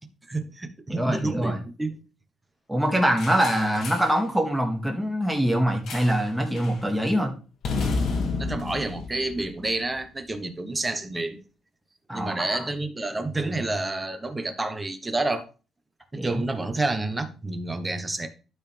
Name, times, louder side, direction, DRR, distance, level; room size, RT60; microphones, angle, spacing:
voice 1, 0.3-2.0 8.4-11.4 12.1-15.4 16.1-18.3, right 2 dB, 20° right, 1.2 m, -29 dB
voice 2, 0.9-1.6 2.7-7.3 12.1-12.6 16.2-16.4, equal, 5° right, 2.1 m, -24 dB
sound 1, 3.2-4.2 5.9-6.3 6.5-6.8 7.6-10.0, left 4 dB, 70° left, 1.7 m, -31 dB
12.0 x 4.0 x 3.4 m
cardioid pair, 90°, 0 cm